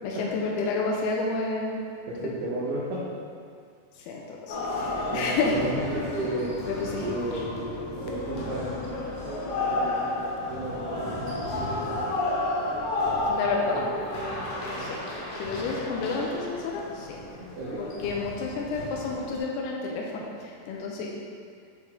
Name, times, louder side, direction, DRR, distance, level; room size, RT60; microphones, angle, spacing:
voice 1, 0.0-1.8 4.0-5.6 6.6-7.4 13.3-13.9 14.8-15.0 15.3-17.2 17.8-21.1, left 4 dB, 85° left, -1 dB, 2.2 m, -30 dB
voice 2, 2.1-3.1 5.1-6.5 7.0-7.7 8.0-8.6 9.3-12.2 13.6-13.9 14.7-14.9 17.4-17.8, right 1 dB, 75° right, -8 dB, 2.9 m, -34 dB
sound 1, 4.5-19.4, left 2 dB, 65° left, 2.6 m, -32 dB
11.0 x 3.9 x 3.6 m, 2.2 s
omnidirectional pair, 5.2 m